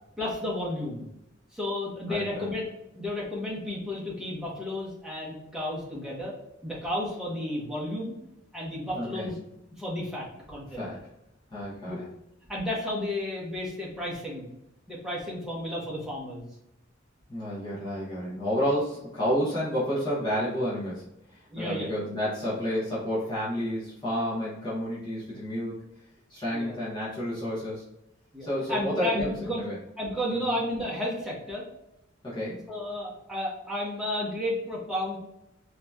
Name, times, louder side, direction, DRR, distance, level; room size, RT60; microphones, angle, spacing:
voice 1, 0.2-1.1 1.5-2.7 2.9-6.3 6.6-8.1 8.5-9.3 9.8-10.9 11.9-12.0 12.5-14.5 14.9-16.5 21.5-21.9 26.5-26.8 28.3-29.6 30.0-31.6 32.7-35.2, left 1 dB, 5° right, -6 dB, 1.0 m, -32 dB
voice 2, 2.1-2.5 8.9-9.3 10.7-11.0 11.5-12.1 17.3-21.0 21.3-25.8 26.3-27.8 28.4-29.8 30.3-30.6 32.2-32.6, equal, 25° left, -9 dB, 1.2 m, -30 dB
3.9 x 2.9 x 2.3 m, 0.85 s
head